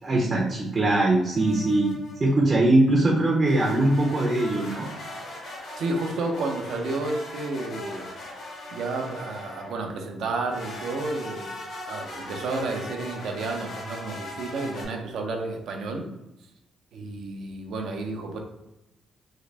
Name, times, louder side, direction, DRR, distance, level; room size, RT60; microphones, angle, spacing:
voice 1, 0.0-1.9 2.2-4.9, right 2 dB, 35° right, -2 dB, 0.6 m, -21 dB
sound 1, 1.3-2.4 3.4-9.8 10.5-14.8, left 1 dB, 70° left, 1.2 m, -39 dB
voice 2, 5.8-8.1 8.7-11.5 11.8-16.1 16.9-18.4, right 3 dB, 70° right, 2 dB, 0.7 m, -31 dB
3.7 x 2.1 x 3.3 m, 0.91 s
cardioid pair, 90°, 0 cm